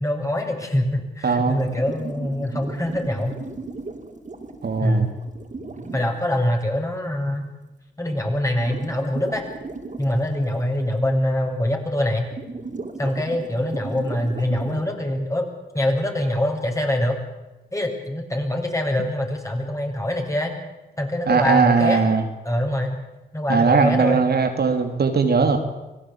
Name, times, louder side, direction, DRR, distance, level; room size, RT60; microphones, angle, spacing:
voice 1, 0.0-3.4 4.8-5.1 5.9-7.5 8.0-9.4 10.0-12.3 13.0-15.5 15.7-17.2 17.7-20.5 21.0-22.0 22.4-23.0 23.3-24.2, left 1 dB, 15° left, 2 dB, 8.0 m, -24 dB
voice 2, 1.2-1.6 4.6-5.1 21.3-22.2 23.5-25.6, right 5 dB, 55° right, 6 dB, 3.1 m, -19 dB
sound 1, 1.6-6.1 8.2-8.3 8.4-10.7 11.0-11.1 11.5-11.6 12.1-14.8, right 3 dB, 40° right, 5.6 m, -36 dB
25.0 x 17.0 x 8.9 m, 1.1 s
supercardioid pair, 45°, 20 cm